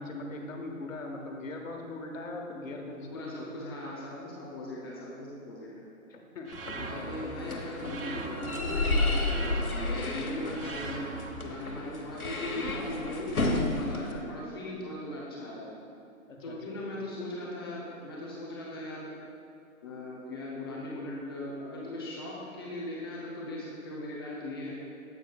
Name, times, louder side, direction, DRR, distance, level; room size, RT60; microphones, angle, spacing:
voice 1, 0.0-3.3 6.1-7.3 16.3-16.8, left 2 dB, 65° left, 2 dB, 1.2 m, -40 dB
voice 2, 2.8-5.8 6.8-11.1 11.4-15.7 16.4-19.1 19.8-24.7, left 1 dB, 15° left, -5 dB, 0.6 m, -39 dB
sound 1, 6.5-14.1, left 2 dB, 90° left, 1.1 m, -32 dB
sound 2, 6.5-7.3 7.8-8.6 9.2-9.9 10.5-11.3, right 5 dB, 40° right, 0.5 m, -40 dB
9.3 x 8.0 x 2.3 m, 2.6 s
figure-of-eight pair, 135°, 42 cm